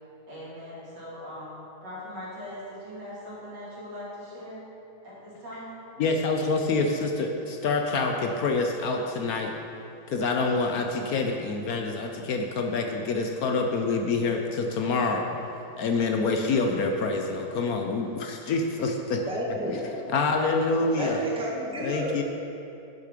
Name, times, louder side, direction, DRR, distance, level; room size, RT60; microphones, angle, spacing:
voice 1, 0.3-4.7 5.0-5.8 19.1-20.2, left 1 dB, 80° right, -8 dB, 3.4 m, -41 dB
voice 2, 6.0-9.5 10.1-15.4 15.8-19.2 20.1-21.2 21.8-22.2, left 3 dB, 65° left, 3 dB, 1.1 m, -26 dB
voice 3, 19.3-20.0 21.0-22.2, equal, 5° right, -3 dB, 1.1 m, -31 dB
10.5 x 6.9 x 5.0 m, 2.8 s
omnidirectional pair, 1.9 m